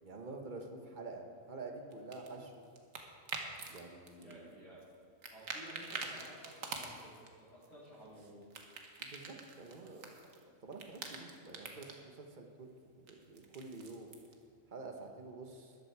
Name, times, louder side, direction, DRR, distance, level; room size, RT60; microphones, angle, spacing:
voice 1, 0.0-2.6 3.7-4.6 9.0-10.1 10.6-14.1 14.7-15.8, right 3 dB, 40° right, 3 dB, 1.4 m, -48 dB
sound 1, 1.9-3.8 4.1-4.9 5.2-7.3 7.6-10.4 10.7-12.0 13.1-14.3, right 4 dB, 80° right, 1.6 m, -46 dB
voice 2, 4.2-4.8 5.3-8.4, right 1 dB, 75° left, -10 dB, 4.1 m, -54 dB
13.5 x 11.5 x 4.8 m, 2.2 s
omnidirectional pair, 1.4 m